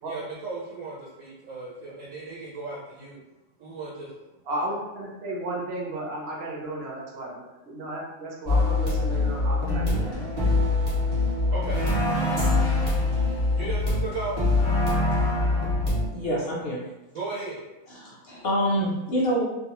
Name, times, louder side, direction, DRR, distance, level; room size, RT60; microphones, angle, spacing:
voice 1, 0.1-3.2 3.6-4.1 11.5-12.1 13.6-14.4 17.1-17.6, right 3 dB, 80° right, -5 dB, 1.0 m, -36 dB
voice 2, 4.4-10.0, right 1 dB, 55° right, -3 dB, 0.8 m, -34 dB
sound 1, 8.5-16.1, left 3 dB, 25° right, 0.6 m, -24 dB
sound 2, 11.7-13.1 14.5-15.9, right 2 dB, 25° left, 0.4 m, -29 dB
voice 3, 16.1-16.8 17.9-19.4, equal, 60° left, -4 dB, 0.6 m, -26 dB
2.4 x 2.1 x 2.9 m, 0.99 s
omnidirectional pair, 1.4 m